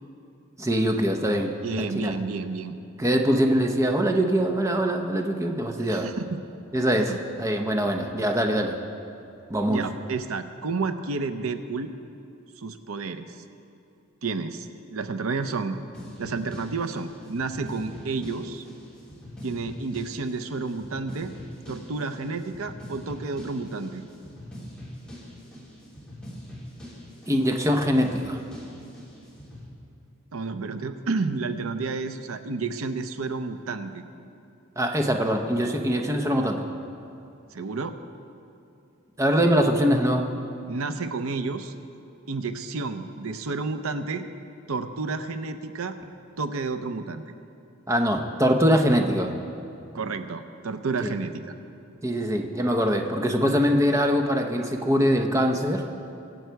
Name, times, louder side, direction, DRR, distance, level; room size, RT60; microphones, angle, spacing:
voice 1, 0.6-1.5 1.8-2.1 3.0-6.1 6.7-8.8 9.5-9.8 27.3-28.4 34.8-36.6 39.2-40.3 47.9-49.3 51.0-51.1 52.0-55.8, equal, 15° right, 3 dB, 0.8 m, -23 dB
voice 2, 1.6-2.8 5.8-6.4 6.9-7.2 9.7-11.9 12.6-13.4 14.2-15.8 16.2-18.7 19.4-21.3 21.7-24.0 30.3-34.0 37.5-38.0 40.7-41.7 42.3-44.3 44.7-46.0 46.4-47.2 49.9-51.4, right 4 dB, 80° right, 9 dB, 0.7 m, -31 dB
sound 1, 15.9-29.6, equal, 5° left, 2.9 m, -43 dB
23.0 x 8.0 x 4.6 m, 2.7 s
head